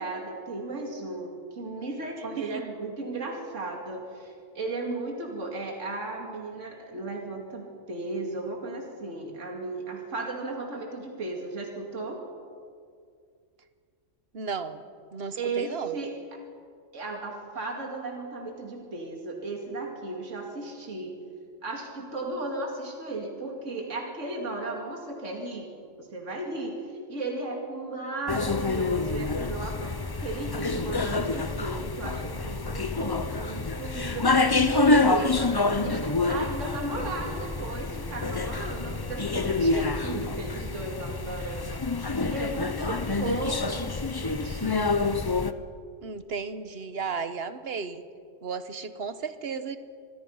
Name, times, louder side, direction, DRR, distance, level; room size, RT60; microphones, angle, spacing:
voice 1, 0.0-12.2 15.4-16.1 16.9-21.1 21.6-25.7 26.0-44.8, right 2 dB, 70° right, 1 dB, 2.7 m, -35 dB
voice 2, 14.3-14.8 15.1-16.0 46.0-48.0 48.4-49.8, right 5 dB, 55° right, 11 dB, 1.3 m, -34 dB
sound 1, 28.3-45.5, left 3 dB, 25° left, 0.5 m, -27 dB
26.0 x 21.0 x 5.6 m, 2.2 s
omnidirectional pair, 1.3 m